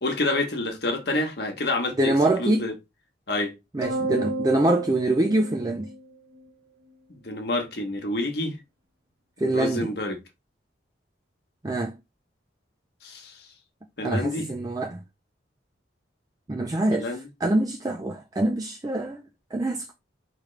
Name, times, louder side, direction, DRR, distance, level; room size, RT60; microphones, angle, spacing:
voice 1, 0.0-2.1 2.4-2.7 3.3-3.5 7.2-8.5 9.5-10.2 13.0-13.4 14.0-14.4 16.9-17.2, left 2 dB, 55° left, 1.1 m, -28 dB
voice 2, 2.0-2.7 3.7-5.9 9.4-9.9 11.6-12.0 14.0-15.0 16.5-19.2 19.5-19.9, right 1 dB, 20° right, 0.4 m, -25 dB
sound 1, 3.8-6.4, right 2 dB, 60° right, 1.4 m, -31 dB
5.0 x 3.2 x 3.2 m
head